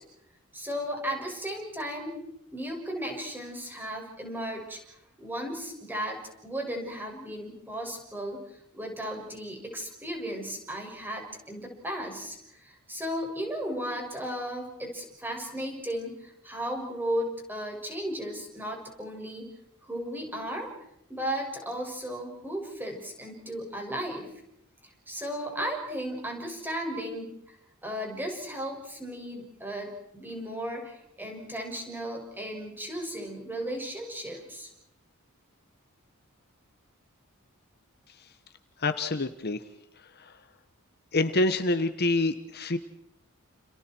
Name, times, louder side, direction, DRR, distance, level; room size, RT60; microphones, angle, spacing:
voice 1, 0.5-2.2 2.5-4.8 5.2-19.5 19.9-20.7 21.1-24.3 25.1-27.5 27.8-34.7, equal, 10° right, 1 dB, 6.4 m, -35 dB
voice 2, 38.8-39.6 40.2-40.3 41.1-42.8, left 2 dB, 50° left, 9 dB, 1.3 m, -26 dB
30.0 x 29.5 x 4.6 m, 0.79 s
head